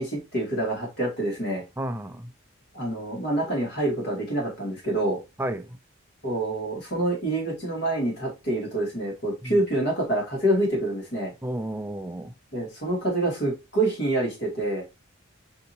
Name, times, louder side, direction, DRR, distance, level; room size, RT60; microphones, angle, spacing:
voice 1, 0.0-1.6 2.7-5.2 6.2-11.3 12.5-14.8, right 1 dB, 55° left, 2.0 m, -26 dB
voice 2, 1.8-2.3 5.4-5.7 9.4-9.6 11.4-12.3, right 1 dB, 10° right, 0.3 m, -32 dB
5.3 x 2.9 x 2.6 m
head